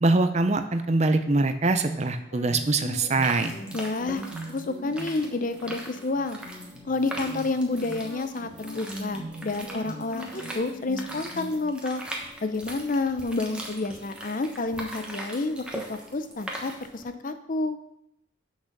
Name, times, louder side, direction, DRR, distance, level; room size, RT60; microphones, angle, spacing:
voice 1, 0.0-3.5, right 2 dB, 35° right, 9 dB, 0.6 m, -23 dB
sound 1, 1.8-11.6, equal, 75° left, 2.4 m, -40 dB
sound 2, 3.1-17.1, right 1 dB, 5° right, 1.1 m, -41 dB
voice 2, 3.7-4.2 4.5-6.4 6.8-12.0 12.4-17.8, left 3 dB, 40° left, 9 dB, 0.5 m, -29 dB
6.2 x 6.1 x 6.5 m, 0.80 s
head